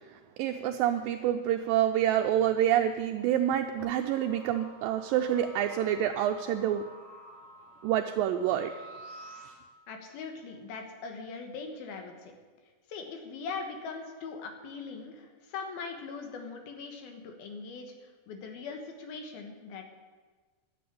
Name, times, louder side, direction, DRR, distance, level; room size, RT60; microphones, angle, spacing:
voice 1, 0.4-6.8 7.8-8.7, right 11 dB, 80° right, 5 dB, 2.1 m, -27 dB
sound 1, 3.8-9.5, equal, 55° left, 5.1 m, -50 dB
voice 2, 9.9-12.3 12.9-19.9, left 4 dB, 80° left, 4 dB, 3.1 m, -41 dB
12.0 x 7.9 x 8.5 m, 1.4 s
omnidirectional pair, 4.4 m